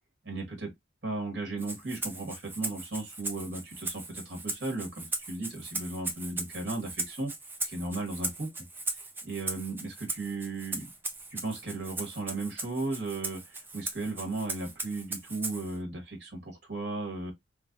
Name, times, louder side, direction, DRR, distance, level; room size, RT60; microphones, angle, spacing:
voice 1, 0.2-0.7 1.0-7.3 7.6-8.5 9.2-10.9 11.3-17.3, right 2 dB, 65° right, 1.5 m, -36 dB
Rattle (instrument), 1.6-15.8, right 3 dB, 10° right, 0.4 m, -38 dB
3.2 x 3.2 x 2.6 m
head